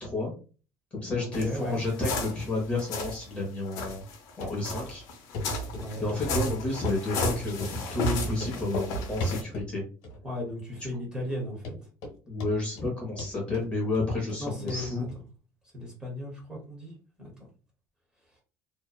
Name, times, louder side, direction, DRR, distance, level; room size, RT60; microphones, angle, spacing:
voice 1, 0.0-0.3 0.9-4.0 4.4-5.0 6.0-9.8 12.3-15.1, left 2 dB, 15° left, -2 dB, 0.7 m, -31 dB
voice 2, 1.2-1.8 5.8-6.1 10.2-11.8 14.4-15.1 15.7-16.9 17.2-17.3, left 1 dB, 10° right, -2 dB, 0.9 m, -36 dB
sound 1, 1.3-3.2 3.7-9.4, left 1 dB, 60° left, 0.6 m, -33 dB
Run, 4.4-4.5 4.9-5.0 5.3-5.5 5.7-7.3 7.6-7.7 8.0-8.1 8.4-8.9 9.2-9.7 10.0-10.5 10.8-10.9 11.3-11.4 11.6-12.1 12.4-12.9 13.2-14.4 14.7-14.8 15.1-15.2, left 2 dB, 80° left, 1.0 m, -35 dB
2.7 x 2.1 x 2.3 m, 0.37 s
cardioid pair, 170°, 7 cm